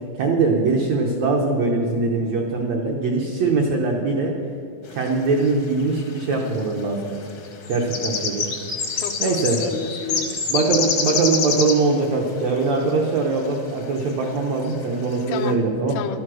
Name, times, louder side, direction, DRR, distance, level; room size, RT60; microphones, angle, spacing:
voice 1, 0.2-4.3 4.9-7.1 7.7-8.5 9.2-9.6 10.5-16.0, right 3 dB, 90° right, 1 dB, 1.5 m, -22 dB
sound 1, 5.5-5.6 5.8-6.4 7.3-11.9 12.8-12.9 13.5-13.6 14.0-14.3 14.7-14.8 15.0-15.3, left 5 dB, 70° left, 1.1 m, -26 dB
voice 2, 8.9-10.4 15.3-15.6 15.9-16.2, left 7 dB, 85° left, 6 dB, 2.7 m, -30 dB
12.0 x 9.6 x 6.1 m, 2.8 s
omnidirectional pair, 4.4 m